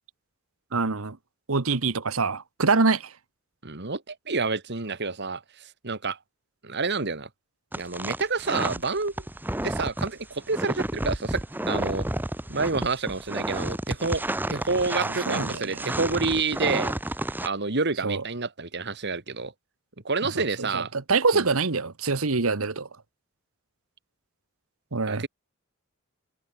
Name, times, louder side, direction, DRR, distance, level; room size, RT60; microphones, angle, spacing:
voice 1, 0.7-1.2 1.5-3.1 15.3-15.8 18.0-18.2 20.2-22.9 24.9-25.2, right 4 dB, 70° right, 1.3 m, -25 dB
voice 2, 3.6-5.4 5.8-6.2 6.6-7.3 7.8-9.1 9.6-12.1 12.5-14.2 14.5-16.9 17.4-19.5 20.0-20.9 21.3-21.4 25.1-25.3, right 4 dB, 50° right, 2.1 m, -28 dB
sound 1, 7.7-17.5, right 1 dB, 10° right, 0.9 m, -31 dB
head